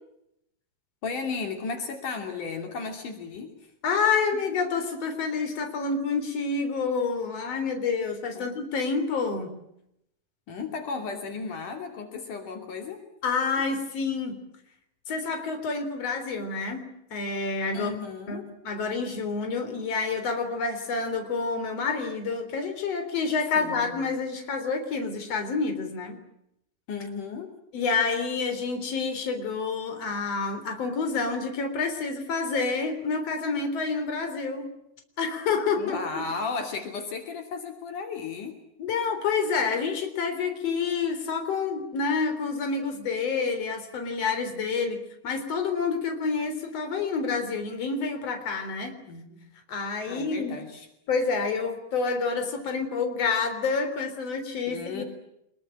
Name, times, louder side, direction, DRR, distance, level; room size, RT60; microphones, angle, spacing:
voice 1, 1.0-3.5 8.3-8.5 10.5-13.0 17.7-18.4 23.6-24.0 26.9-27.5 35.8-38.6 49.1-49.4 50.1-50.9 54.7-55.0, left 4 dB, 70° left, 4 dB, 4.4 m, -34 dB
voice 2, 3.8-9.6 13.2-14.4 15.1-18.0 18.3-26.2 27.7-34.7 35.2-36.2 38.8-49.0 49.7-50.6 51.1-55.0, left 4 dB, 50° left, 6 dB, 4.7 m, -28 dB
26.0 x 22.5 x 8.9 m, 0.80 s
omnidirectional pair, 3.7 m